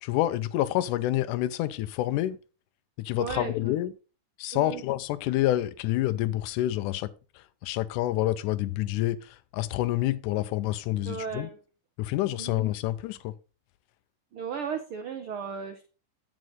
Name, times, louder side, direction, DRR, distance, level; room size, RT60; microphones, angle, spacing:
voice 1, 0.0-2.4 3.0-3.9 4.4-7.1 7.4-11.5 12.0-13.3, left 14 dB, 85° left, 2.1 m, -28 dB
voice 2, 3.2-3.6 4.5-4.8 11.1-11.6 12.4-12.6 14.3-15.9, right 6 dB, 75° right, 1.2 m, -35 dB
9.5 x 7.4 x 4.0 m
omnidirectional pair, 3.7 m